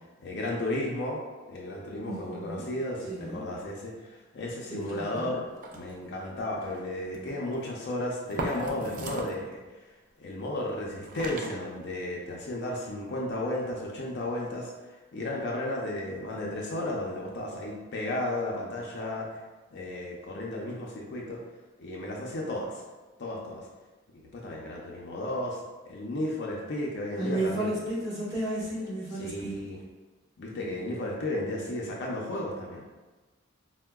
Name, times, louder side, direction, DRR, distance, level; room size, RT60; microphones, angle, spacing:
voice 1, 0.2-1.2 1.5-5.5 5.7-9.6 10.2-14.7 15.1-19.4 19.7-21.4 21.8-22.7 23.2-23.6 24.3-25.6 25.9-27.7 29.2-29.8 30.4-32.8, left 1 dB, 60° left, -2 dB, 0.5 m, -33 dB
voice 2, 2.0-2.7 3.1-3.4 4.7-5.4 27.2-29.6, right 1 dB, 15° right, -9 dB, 1.1 m, -33 dB
sound 1, 4.9-5.3 5.6-6.1 6.6-6.8 7.1-7.6 8.3-9.4 10.7-10.8 11.0-11.9, right 2 dB, 45° right, 0.4 m, -37 dB
4.5 x 2.1 x 2.2 m, 1.2 s
head